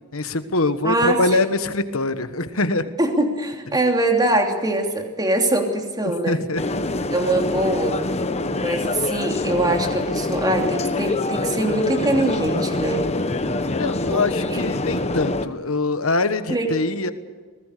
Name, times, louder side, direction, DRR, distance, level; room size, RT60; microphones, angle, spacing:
voice 1, 0.1-2.9 6.3-6.7 13.7-17.1, left 2 dB, 70° left, 10 dB, 1.4 m, -23 dB
voice 2, 0.8-1.2 3.0-6.4 7.1-8.0 8.6-13.0 14.1-14.6 16.5-16.7, right 1 dB, 20° right, 2 dB, 3.0 m, -22 dB
sound 1, 6.6-15.5, left 2 dB, 30° left, 1.1 m, -25 dB
26.0 x 19.0 x 6.8 m, 1.5 s
head